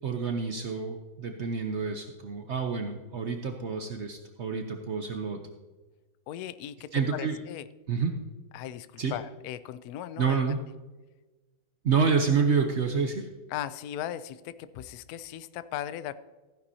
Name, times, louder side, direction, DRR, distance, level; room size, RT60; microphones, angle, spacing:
voice 1, 0.0-5.4 6.9-7.4 7.9-8.1 9.0-9.1 10.2-10.6 11.8-13.3, right 5 dB, 80° right, 5 dB, 0.6 m, -28 dB
voice 2, 6.3-7.7 8.5-10.5 13.5-16.1, left 11 dB, 90° left, 14 dB, 0.8 m, -38 dB
14.5 x 10.5 x 2.7 m, 1.2 s
omnidirectional pair, 2.2 m